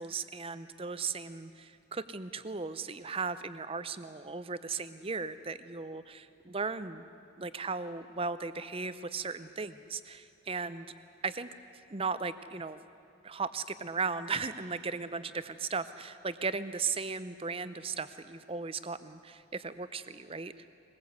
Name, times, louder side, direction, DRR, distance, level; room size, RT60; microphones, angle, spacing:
voice 1, 0.0-7.1 7.4-10.9 11.2-11.5 11.9-12.8 13.2-20.7, right 4 dB, 25° right, 12 dB, 0.6 m, -36 dB
21.0 x 20.5 x 8.1 m, 2.6 s
head